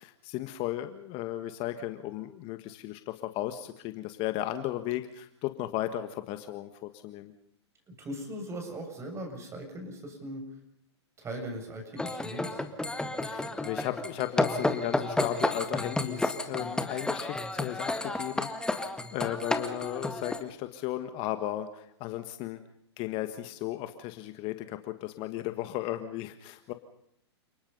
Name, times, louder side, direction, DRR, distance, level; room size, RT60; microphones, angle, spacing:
voice 1, 0.0-7.3 13.2-22.6 23.0-26.7, left 13 dB, 40° left, 9 dB, 1.6 m, -35 dB
voice 2, 7.9-10.4 11.2-12.6, right 1 dB, 20° right, 4 dB, 7.2 m, -39 dB
sound 1, 12.0-20.4, left 2 dB, 5° left, 1.9 m, -31 dB
29.5 x 20.0 x 5.5 m, 0.71 s
hypercardioid pair, 115°, 15 cm